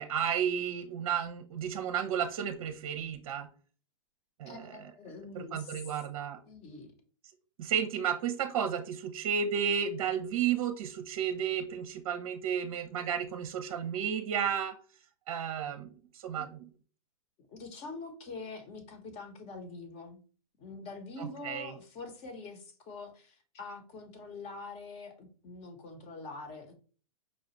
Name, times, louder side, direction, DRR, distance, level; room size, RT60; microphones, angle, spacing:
voice 1, 0.0-3.5 4.4-4.8 5.3-6.4 7.6-14.8 15.3-16.6 21.2-21.7, right 8 dB, 55° right, 8 dB, 0.6 m, -32 dB
voice 2, 4.5-5.8 6.5-6.9 16.4-16.5 17.5-20.2 20.6-26.7, left 3 dB, 35° left, 5 dB, 1.1 m, -45 dB
5.3 x 2.4 x 3.0 m, 0.40 s
hypercardioid pair, 115°, 18 cm